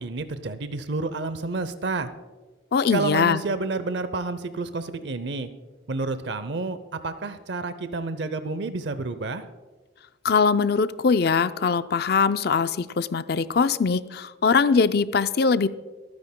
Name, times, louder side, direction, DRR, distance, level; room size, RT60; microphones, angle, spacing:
voice 1, 0.0-2.1 2.9-5.5 5.9-9.4, right 3 dB, 65° right, 12 dB, 0.6 m, -30 dB
voice 2, 2.7-3.4 10.2-15.7, left 5 dB, 55° left, 12 dB, 0.4 m, -22 dB
27.0 x 9.6 x 2.2 m, 1.3 s
head